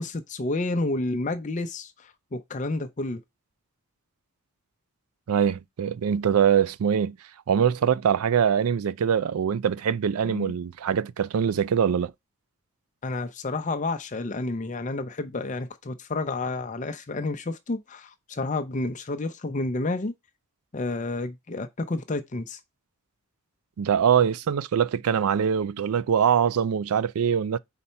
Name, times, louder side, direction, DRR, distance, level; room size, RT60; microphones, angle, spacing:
voice 1, 0.0-3.2 10.2-10.5 13.0-20.1 20.7-22.6, left 2 dB, 35° left, 0.5 m, -30 dB
voice 2, 5.3-7.2 7.5-12.1 23.8-27.6, right 8 dB, 85° right, 0.4 m, -23 dB
4.3 x 4.1 x 5.5 m
head